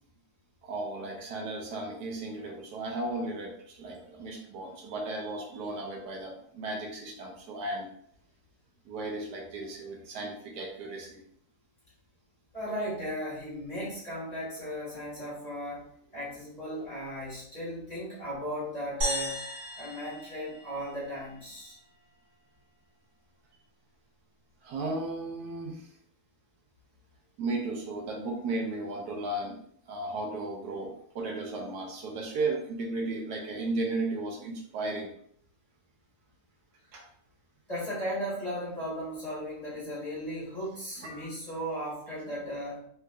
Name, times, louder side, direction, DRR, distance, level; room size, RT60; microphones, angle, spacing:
voice 1, 0.6-7.9 8.8-11.2 24.6-25.9 27.4-29.6 29.9-35.1 36.9-37.0 41.0-41.3, right 2 dB, 75° right, 0 dB, 1.2 m, -35 dB
voice 2, 12.5-19.4 19.8-21.8 37.7-42.8, equal, 25° left, -9 dB, 1.3 m, -36 dB
sound 1, 19.0-21.4, equal, 50° right, 1.4 m, -35 dB
3.5 x 3.0 x 2.3 m, 0.66 s
omnidirectional pair, 1.8 m